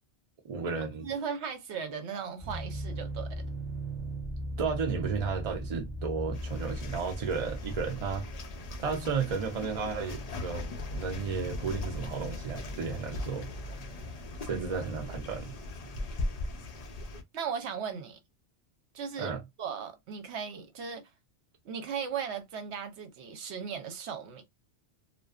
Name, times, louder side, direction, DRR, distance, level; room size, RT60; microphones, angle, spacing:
voice 1, 0.5-1.1 4.6-8.3 8.8-13.5 14.4-15.5 19.2-19.4, right 5 dB, 50° right, 0.4 m, -33 dB
voice 2, 1.0-3.4 14.5-14.7 17.3-18.2 18.9-21.0 21.6-24.4, right 7 dB, 75° right, 0.9 m, -37 dB
sound 1, 2.4-9.6, right 1 dB, 10° left, 0.6 m, -39 dB
sound 2, 6.3-17.2, left 2 dB, 55° left, 0.4 m, -39 dB
2.5 x 2.1 x 2.3 m
omnidirectional pair, 1.2 m